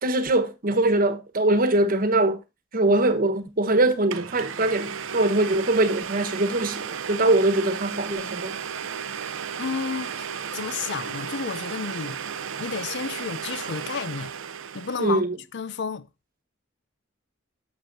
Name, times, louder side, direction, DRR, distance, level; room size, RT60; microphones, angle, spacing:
voice 1, 0.0-2.4 2.7-8.5 15.0-15.4, right 2 dB, 45° right, 1.2 m, -22 dB
Domestic sounds home sounds, 3.6-3.7 4.1-15.2, right 7 dB, 85° right, 0.6 m, -34 dB
voice 2, 9.6-12.2 12.6-14.3 14.7-15.2 15.5-16.1, left 5 dB, 65° left, 0.6 m, -31 dB
11.5 x 7.4 x 2.7 m
head